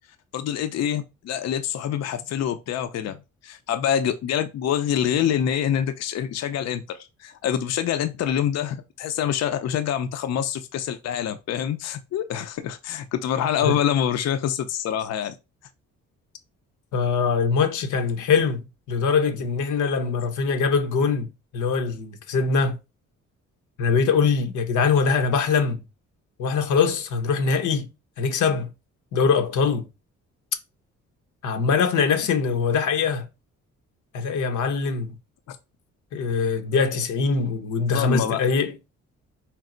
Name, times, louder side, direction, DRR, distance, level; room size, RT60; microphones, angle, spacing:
voice 1, 0.3-15.4 35.5-35.6 37.9-38.4, left 9 dB, 60° left, 0.5 m, -26 dB
voice 2, 16.9-21.3 21.5-22.8 23.8-25.8 26.4-27.9 28.2-28.7 29.1-29.9 31.4-33.3 34.1-35.1 36.1-38.8, left 5 dB, 80° left, 0.8 m, -22 dB
4.4 x 2.0 x 3.7 m
cardioid pair, 90°, 30 cm